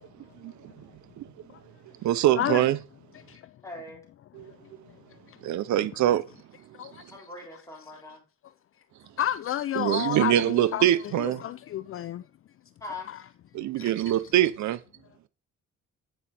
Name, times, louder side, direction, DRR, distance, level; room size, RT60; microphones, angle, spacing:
voice 1, 2.0-2.8 4.4-4.5 5.4-6.2 9.8-11.4 13.5-14.8, right 13 dB, 70° right, 0.6 m, -24 dB
voice 2, 3.6-4.0 7.1-8.2 12.8-13.1, left 2 dB, 10° left, 3.9 m, -41 dB
voice 3, 9.2-12.2 13.8-13.9, left 11 dB, 45° left, 0.4 m, -30 dB
9.3 x 5.1 x 4.3 m
cardioid pair, 90°, 30 cm